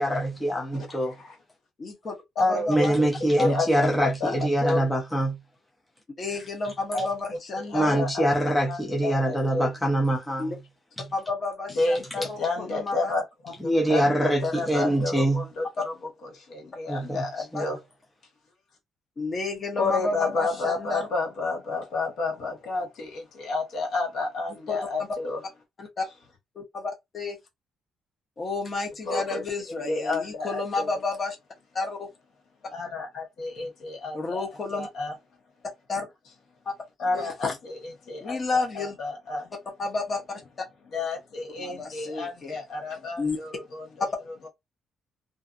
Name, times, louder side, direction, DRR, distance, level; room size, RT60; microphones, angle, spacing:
voice 1, 0.0-1.2 2.7-5.4 7.7-10.6 11.0-11.1 13.6-15.5 16.9-17.7, right 1 dB, 5° left, 0.5 m, -24 dB
voice 2, 1.8-2.9 3.4-3.5 6.2-8.0 10.4-10.6 11.1-12.4 12.7-13.1 15.1-15.2 17.5-17.6 19.2-21.1 24.7-24.8 25.8-26.0 26.6-27.4 28.4-31.4 31.7-32.1 34.1-34.9 35.9-36.1 37.1-37.6 38.2-38.9 39.8-40.2 41.6-42.5 43.2-43.4, left 3 dB, 30° left, 0.8 m, -31 dB
voice 3, 2.4-3.1 3.4-4.3 4.6-4.8 6.9-7.1 7.6-8.3 8.7-9.7 11.7-15.9 16.3-17.8 19.8-25.4 29.1-29.4 29.7-31.0 32.7-35.1 37.0-39.5 40.9-43.9, left 3 dB, 65° left, 1.2 m, -30 dB
2.6 x 2.5 x 2.4 m
cardioid pair, 180°, 0 cm